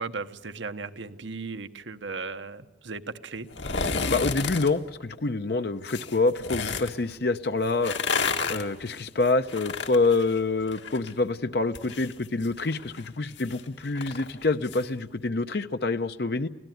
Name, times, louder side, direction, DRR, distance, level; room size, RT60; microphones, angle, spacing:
voice 1, 0.0-3.5 3.8-3.9, right 4 dB, 80° right, 9 dB, 1.1 m, -36 dB
sound 1, 3.5-4.7 5.8-6.9 7.7-11.1 11.4-14.8 15.2-15.3, left 5 dB, 75° left, 1.8 m, -32 dB
voice 2, 4.1-7.9 8.5-16.5, left 3 dB, 60° left, 9 dB, 0.7 m, -26 dB
25.0 x 17.0 x 9.3 m, 1.3 s
head